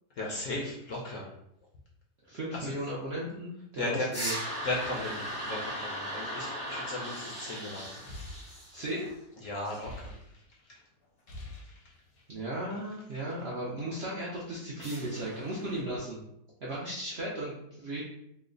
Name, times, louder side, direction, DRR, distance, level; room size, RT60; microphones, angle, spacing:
voice 1, 0.2-1.3 2.5-2.7 3.8-4.1 4.6-8.1 9.4-10.1 10.7-10.8 11.7-11.8, left 2 dB, 70° left, -2 dB, 0.8 m, -36 dB
voice 2, 2.2-4.4 8.7-9.1 12.3-16.2 16.6-18.0, right 1 dB, 65° right, -5 dB, 0.6 m, -36 dB
sound 1, 4.1-9.1 14.8-15.8, equal, 5° left, 0.7 m, -38 dB
sound 2, 7.8-10.7 11.0-12.4, left 2 dB, 85° left, 1.4 m, -47 dB
3.1 x 2.1 x 3.7 m, 0.78 s
omnidirectional pair, 1.8 m